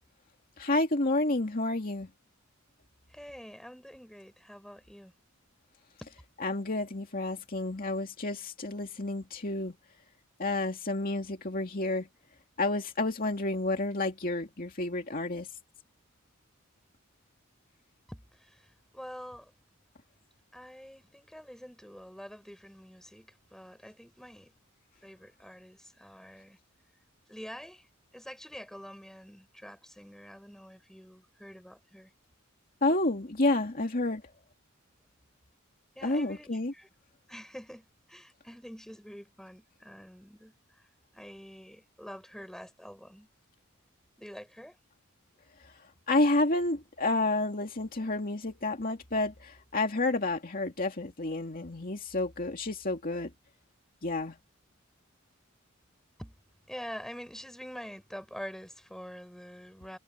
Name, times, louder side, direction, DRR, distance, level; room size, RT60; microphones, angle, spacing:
voice 1, 0.6-2.1 6.4-9.7 10.4-12.1 12.6-15.5 32.8-34.2 36.0-36.7 46.1-53.3 54.0-54.4, left 2 dB, 45° left, 2.4 m, -30 dB
voice 2, 3.1-5.1 6.0-6.1 18.1-19.5 20.5-24.5 25.0-26.6 27.3-27.9 28.1-32.1 36.0-36.9 37.3-40.5 41.1-43.3 44.2-44.8 56.2-56.4 56.7-60.0, equal, ahead, 6.9 m, -46 dB
head